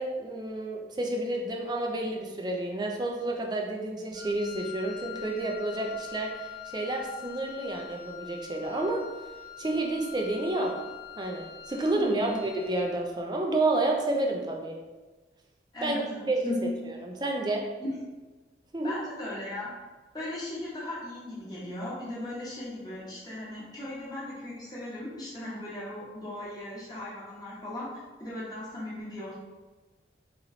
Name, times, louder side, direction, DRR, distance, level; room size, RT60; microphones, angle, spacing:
voice 1, 0.0-9.0 9.6-10.7 11.2-14.8 15.8-16.0 16.3-16.4 17.0-17.6 18.7-18.9, right 2 dB, 25° right, 1 dB, 0.4 m, -30 dB
Wind instrument woodwind instrument, 4.1-13.0, left 10 dB, 75° left, 0.9 m, -44 dB
voice 2, 15.7-16.7 18.8-19.7 20.1-29.4, left 1 dB, 20° left, -7 dB, 1.2 m, -37 dB
3.1 x 3.0 x 3.8 m, 1.2 s
head